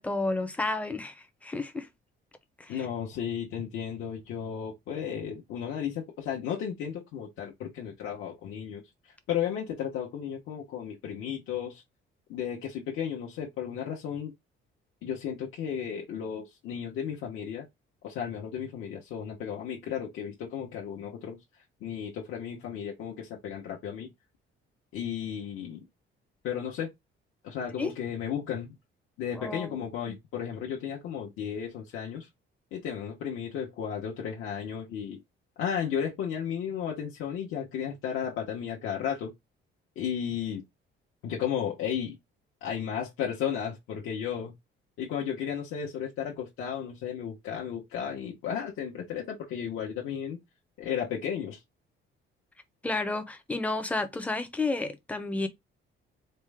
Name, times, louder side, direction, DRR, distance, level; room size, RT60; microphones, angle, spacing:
voice 1, 0.0-1.9 2.6-2.9 27.8-27.9 29.4-30.2 52.8-55.5, left 2 dB, 5° left, 0.4 m, -31 dB
voice 2, 2.7-11.8 12.3-14.3 15.0-17.7 18.0-24.1 24.9-25.9 26.4-26.9 27.4-28.7 29.2-32.3 32.7-35.2 35.6-39.3 40.0-40.6 41.2-42.2 42.6-44.5 45.0-50.4 50.8-51.6, left 8 dB, 80° left, 0.8 m, -34 dB
4.4 x 2.1 x 3.3 m
cardioid pair, 175°, 21 cm